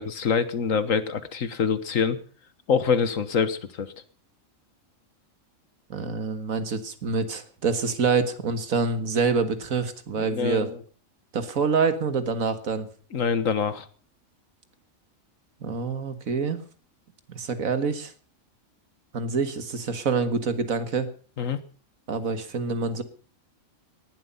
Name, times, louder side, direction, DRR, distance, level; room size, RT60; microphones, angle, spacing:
voice 1, 0.0-2.2 2.7-3.9 10.2-10.8 13.1-13.9 21.4-21.6, left 6 dB, 75° left, 13 dB, 1.7 m, -25 dB
voice 2, 5.9-10.7 11.3-12.9 15.6-16.6 17.3-18.1 19.1-21.1 22.1-23.0, right 5 dB, 85° right, 10 dB, 2.0 m, -26 dB
18.5 x 11.5 x 5.6 m, 0.42 s
omnidirectional pair, 1.4 m